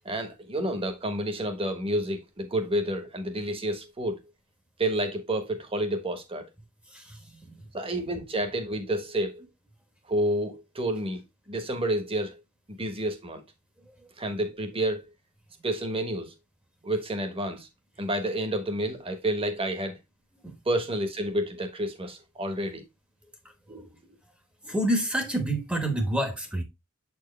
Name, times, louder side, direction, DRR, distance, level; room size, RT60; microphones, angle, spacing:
voice 1, 0.0-4.2 4.8-6.4 7.7-9.4 10.1-11.2 11.5-12.4 12.8-13.4 14.2-15.0 15.6-16.3 16.8-17.7 18.0-20.0 20.6-22.8 23.7-23.8, right 1 dB, 25° right, 1.3 m, -29 dB
voice 2, 6.9-7.4 20.4-20.5 24.6-26.6, right 1 dB, 5° right, 1.1 m, -28 dB
7.8 x 4.6 x 3.2 m
head